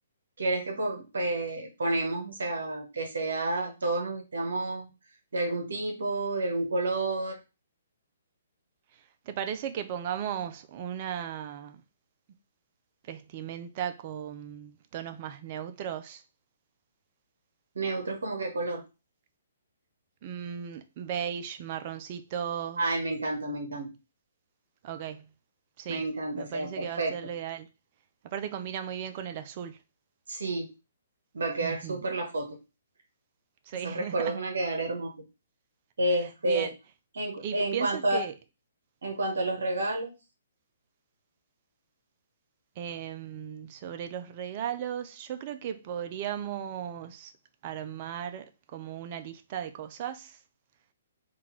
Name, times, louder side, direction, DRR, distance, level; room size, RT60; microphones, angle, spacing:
voice 1, 0.4-4.9 5.3-7.4 17.7-18.8 22.8-23.9 25.9-27.2 30.3-30.7 31.3-32.6 33.8-35.1 36.0-36.7 37.1-38.2 39.0-40.1, right 2 dB, 75° right, 0.9 m, -30 dB
voice 2, 8.9-11.8 13.0-16.2 20.2-22.8 24.8-25.3 25.8-26.1 26.3-27.7 28.2-29.8 31.6-32.1 33.7-34.3 36.4-36.7 37.4-38.3 42.8-47.3 47.6-50.4, right 9 dB, 40° right, 0.5 m, -36 dB
3.8 x 2.5 x 4.4 m
figure-of-eight pair, 130°, 0 cm